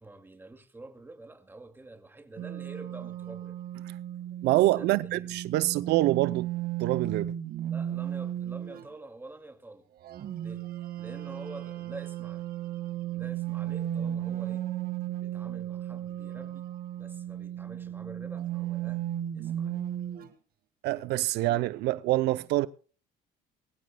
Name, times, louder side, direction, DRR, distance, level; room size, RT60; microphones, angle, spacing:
voice 1, 0.0-3.6 4.8-5.8 7.7-9.9 10.4-10.7 11.0-12.5 13.1-14.7 15.2-16.7 17.0-19.1 19.3-19.9, right 2 dB, 10° right, 2.1 m, -47 dB
sound 1, 2.4-8.9 10.0-20.3, right 11 dB, 60° right, 1.7 m, -35 dB
voice 2, 4.4-6.5 6.8-7.3 20.8-22.7, right 17 dB, 80° right, 0.5 m, -26 dB
22.0 x 16.0 x 2.2 m
cardioid pair, 110°, 17 cm